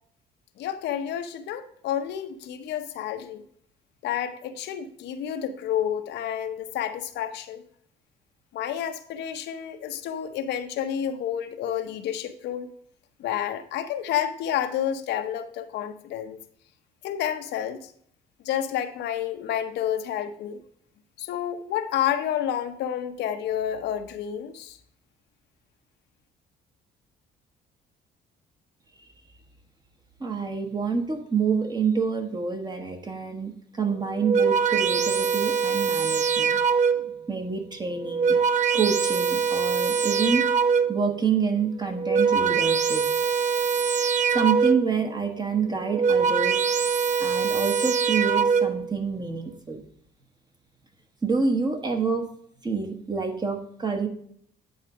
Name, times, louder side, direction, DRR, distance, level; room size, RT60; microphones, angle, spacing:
voice 1, 0.6-3.4 4.0-7.6 8.5-12.7 13.2-16.4 17.0-17.8 18.4-20.6 21.2-24.8, left 10 dB, 80° left, 8 dB, 0.8 m, -30 dB
voice 2, 30.2-36.6 37.3-38.4 38.7-40.4 40.9-43.0 44.3-46.6 47.2-49.8 51.2-52.3 52.6-54.1, right 5 dB, 25° right, 6 dB, 1.3 m, -27 dB
sound 1, 34.0-37.2 37.9-41.1 41.8-45.0 45.7-48.9, right 6 dB, 45° right, 0.6 m, -23 dB
9.4 x 4.0 x 4.8 m, 0.64 s
cardioid pair, 110°, 18 cm